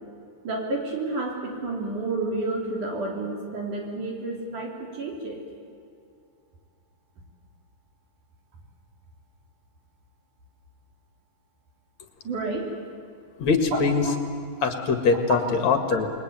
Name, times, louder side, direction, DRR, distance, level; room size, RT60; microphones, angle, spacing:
voice 1, 0.4-5.4 12.2-12.7, right 2 dB, 60° right, 0 dB, 4.7 m, -30 dB
voice 2, 13.4-14.1 14.6-16.1, left 4 dB, 55° left, 6 dB, 3.0 m, -22 dB
28.0 x 21.0 x 9.4 m, 2.3 s
omnidirectional pair, 4.0 m